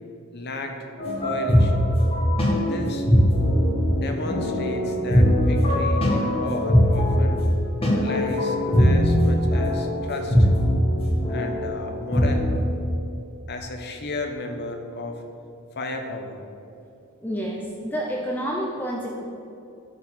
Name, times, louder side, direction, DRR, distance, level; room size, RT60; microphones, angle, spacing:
voice 1, 0.3-0.8 1.2-2.0 2.6-3.1 3.9-7.4 7.9-10.5 11.3-12.6 13.5-15.2 15.7-16.4, left 2 dB, 50° left, 4 dB, 1.1 m, -34 dB
sound 1, 1.0-12.6, equal, 25° left, 2.1 m, -21 dB
voice 2, 17.2-19.2, equal, 10° left, -2 dB, 0.8 m, -29 dB
11.5 x 4.8 x 7.2 m, 2.6 s
head